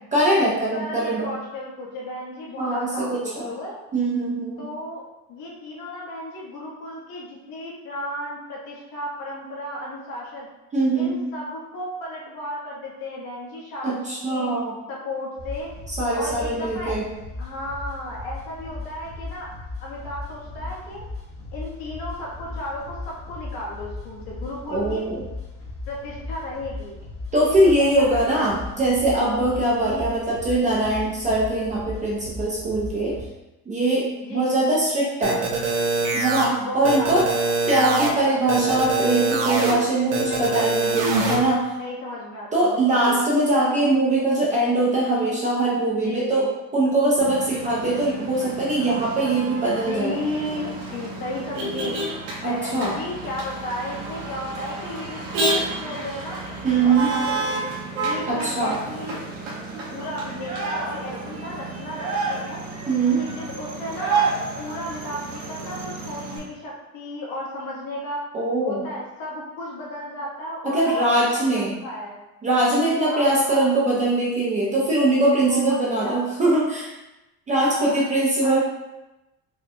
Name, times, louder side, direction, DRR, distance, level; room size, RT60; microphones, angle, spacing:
voice 1, 0.1-1.3 2.6-3.5 3.9-4.7 10.7-11.2 13.8-14.8 16.0-17.1 24.7-25.2 27.3-33.2 33.7-35.4 36.1-37.2 37.7-41.0 41.3-41.7 42.5-50.2 52.4-52.9 56.6-57.1 58.3-58.8 62.9-63.2 68.3-68.8 70.6-71.8 72.4-76.9 77.5-78.6, right 2 dB, 20° right, -5 dB, 0.5 m, -22 dB
voice 2, 0.7-3.8 4.6-5.0 5.3-10.5 10.9-14.5 14.9-15.7 16.1-17.0 17.4-19.5 19.8-21.0 21.5-25.0 25.9-26.9 27.6-28.5 29.7-30.2 34.2-34.5 36.6-37.3 37.7-38.8 40.2-41.1 41.8-43.2 45.9-46.5 49.7-50.6 50.9-56.4 56.8-57.6 58.0-59.2 59.9-62.6 63.2-64.2 64.6-68.2 68.6-72.2 73.0-73.7 75.4-76.3 77.6-78.6, left 1 dB, 60° left, -4 dB, 1.2 m, -34 dB
sound 1, 15.4-33.2, left 3 dB, 35° left, 1.1 m, -37 dB
sound 2, 35.2-36.5 36.8-38.1 38.5-39.7 40.1-41.3, right 3 dB, 60° right, 0.8 m, -23 dB
Motor vehicle (road), 47.2-66.4, right 3 dB, 85° right, 1.2 m, -30 dB
4.8 x 2.2 x 2.7 m, 1.0 s
cardioid pair, 160°, 38 cm